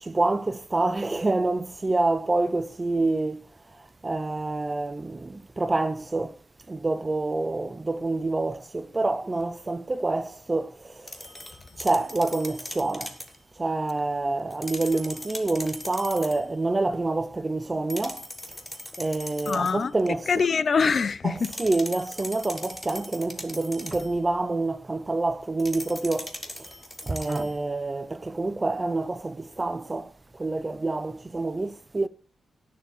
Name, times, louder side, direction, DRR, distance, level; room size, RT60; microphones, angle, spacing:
voice 1, 0.0-3.5 3.8-6.4 6.7-11.2 11.8-13.2 13.6-18.3 19.0-20.5 21.2-26.7 27.0-32.1, right 2 dB, 20° right, 0.6 m, -27 dB
sound 1, 11.1-13.4 14.5-16.5 17.9-19.9 21.4-24.2 25.6-27.6, left 1 dB, 10° left, 1.5 m, -40 dB
voice 2, 19.5-19.9 20.3-21.5, left 5 dB, 40° left, 0.6 m, -23 dB
18.0 x 7.0 x 4.4 m
wide cardioid pair, 160°, 0 cm